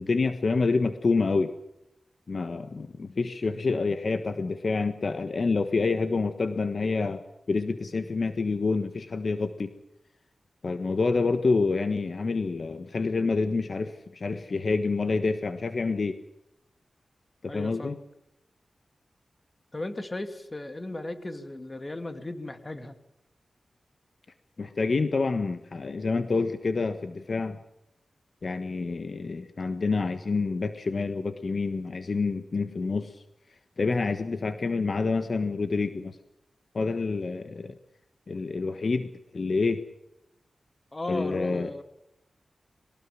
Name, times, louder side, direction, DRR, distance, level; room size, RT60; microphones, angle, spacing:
voice 1, 0.0-1.5 2.3-7.2 7.5-9.7 10.6-16.2 17.4-18.0 24.6-27.6 28.4-33.2 33.8-36.2 36.7-37.8 38.3-39.1 39.3-39.8 41.1-41.7, left 4 dB, 55° left, 9 dB, 1.5 m, -27 dB
voice 2, 17.5-18.0 19.7-23.0 40.9-41.8, left 2 dB, 25° left, 8 dB, 2.6 m, -36 dB
22.0 x 19.0 x 7.6 m, 0.84 s
wide cardioid pair, 100°, 0 cm